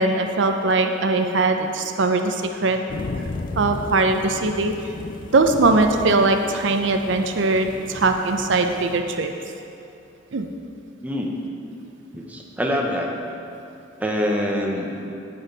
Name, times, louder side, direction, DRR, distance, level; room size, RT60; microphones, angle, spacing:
voice 1, 0.0-2.8 3.6-4.7 5.3-9.3 10.3-10.5, right 3 dB, 65° right, 5 dB, 0.5 m, -20 dB
sound 1, 2.9-9.0, left 3 dB, 45° left, 0.4 m, -35 dB
voice 2, 11.0-11.4 12.1-13.1 14.0-14.9, equal, 10° right, -1 dB, 0.8 m, -25 dB
9.6 x 9.2 x 4.0 m, 2.7 s
head